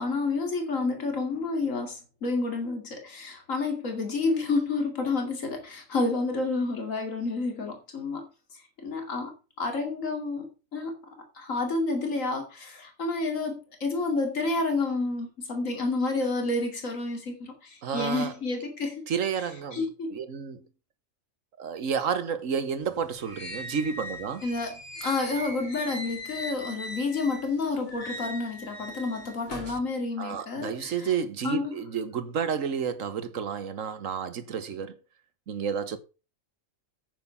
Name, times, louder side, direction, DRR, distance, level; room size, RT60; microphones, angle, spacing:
voice 1, 0.0-8.3 8.5-11.0 11.3-19.1 19.7-20.1 24.4-31.1 31.4-31.8, left 3 dB, 70° left, 2.9 m, -30 dB
voice 2, 17.8-18.3 19.1-19.8 20.1-20.6 21.6-24.4 29.7-29.8 30.2-35.0 35.5-36.0, right 7 dB, 70° right, 1.5 m, -31 dB
sound 1, 22.8-27.5 27.9-29.8, equal, 35° left, 3.3 m, -40 dB
9.0 x 8.0 x 5.5 m
omnidirectional pair, 1.4 m